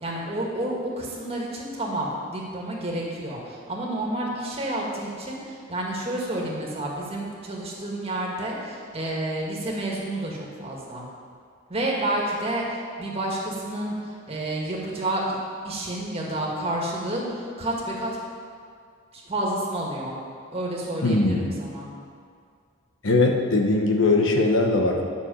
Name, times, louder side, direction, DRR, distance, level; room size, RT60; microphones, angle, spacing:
voice 1, 0.0-11.1 11.7-15.4 15.6-18.2 19.1-20.1 20.5-21.9, right 1 dB, 30° right, -3 dB, 2.0 m, -30 dB
voice 2, 21.0-21.5 23.0-25.0, left 2 dB, 65° left, 3 dB, 1.0 m, -20 dB
10.5 x 6.5 x 7.0 m, 2.2 s
head